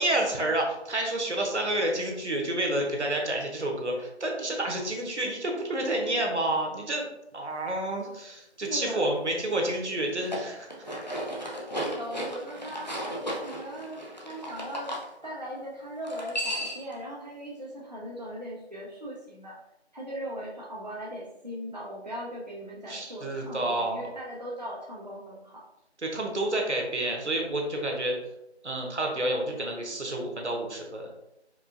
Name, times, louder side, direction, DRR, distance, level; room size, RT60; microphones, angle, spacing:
voice 1, 0.0-7.1 7.3-10.7 22.9-24.1 26.0-28.1 28.6-31.1, right 1 dB, 85° right, 1 dB, 1.1 m, -29 dB
voice 2, 8.7-9.0 11.8-12.9 13.4-19.6 19.9-25.6, equal, 40° right, -4 dB, 0.5 m, -39 dB
sound 1, 10.1-15.0 16.0-16.9, equal, 40° left, 0.5 m, -35 dB
4.6 x 2.3 x 2.5 m, 0.86 s
figure-of-eight pair, 175°, 34 cm